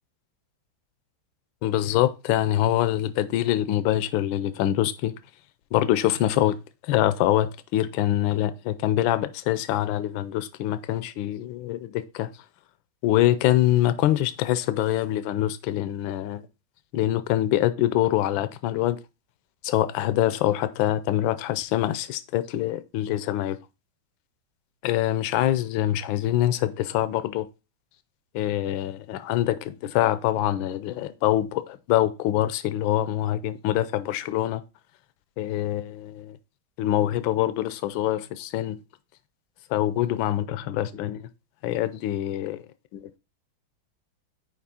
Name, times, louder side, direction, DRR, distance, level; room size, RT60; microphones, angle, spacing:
voice 1, 1.6-5.1 5.7-6.6 6.9-12.3 13.0-16.4 16.9-19.0 19.6-23.6 24.8-27.5 28.3-34.6 35.4-36.4 36.8-38.8 39.7-41.3 41.6-42.6 42.9-43.2, left 13 dB, 75° left, 1.3 m, -24 dB
6.0 x 4.7 x 4.2 m
omnidirectional pair, 2.3 m